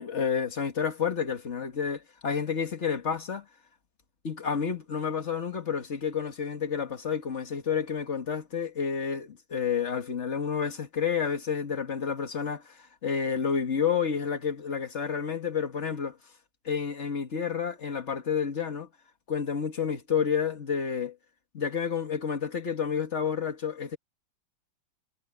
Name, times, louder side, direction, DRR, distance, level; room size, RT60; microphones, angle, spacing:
voice 1, 0.0-3.5 4.2-16.2 16.7-18.9 19.3-21.2 21.5-24.0, left 7 dB, 35° left, 1.7 m, -30 dB
omnidirectional pair, 2.2 m